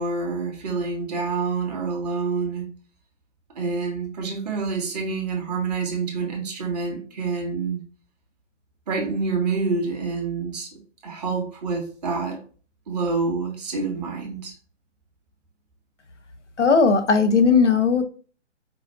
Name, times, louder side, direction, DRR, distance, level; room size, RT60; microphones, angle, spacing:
voice 1, 0.0-2.7 3.5-7.8 8.9-12.4 12.9-14.5, right 4 dB, 35° right, 1.1 m, -27 dB
voice 2, 16.6-18.0, left 5 dB, 75° left, 1.1 m, -17 dB
4.9 x 2.3 x 4.1 m
figure-of-eight pair, 145°, 36 cm